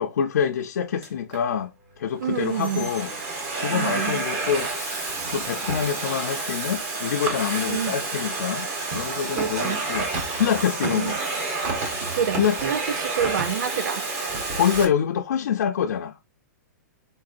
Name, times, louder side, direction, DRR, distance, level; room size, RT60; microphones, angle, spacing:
voice 1, 0.0-3.1 3.6-10.1 10.3-11.2 12.4-12.6 14.5-16.2, left 8 dB, 70° left, 0.5 m, -26 dB
Domestic sounds home sounds, 1.0-1.4 2.1-14.8, right 3 dB, 20° right, 0.8 m, -29 dB
voice 2, 2.2-2.9 3.7-4.2 7.7-8.0 9.4-9.8 10.8-11.2 12.2-14.0, right 8 dB, 80° right, 0.5 m, -28 dB
4.0 x 3.9 x 2.5 m
hypercardioid pair, 175°, 10 cm